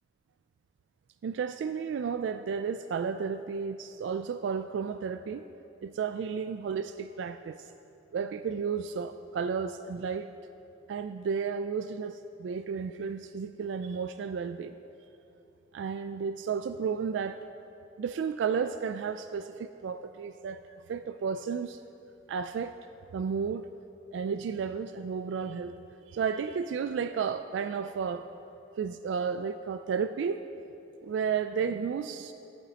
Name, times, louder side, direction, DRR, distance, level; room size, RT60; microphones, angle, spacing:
voice 1, 1.2-5.4 5.8-7.6 8.1-10.3 10.9-14.7 15.7-17.4 18.0-20.6 20.9-21.8 22.3-22.8 23.1-23.7 24.1-28.2 28.8-30.4 31.0-32.3, right 6 dB, 80° right, 10 dB, 0.3 m, -32 dB
15.5 x 11.0 x 2.9 m, 3.0 s
head